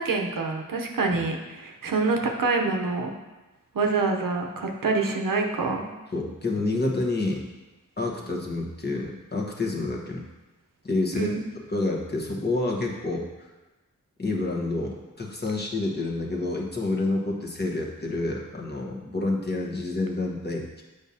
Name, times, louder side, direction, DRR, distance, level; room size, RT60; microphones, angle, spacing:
voice 1, 0.0-3.1 3.7-5.9 11.1-11.4, right 3 dB, 80° right, 2 dB, 0.8 m, -26 dB
voice 2, 6.1-7.4 8.0-10.3 10.8-13.3 14.2-20.8, left 2 dB, 30° left, -2 dB, 1.1 m, -28 dB
8.1 x 5.2 x 2.8 m, 1.1 s
wide cardioid pair, 70°, 33 cm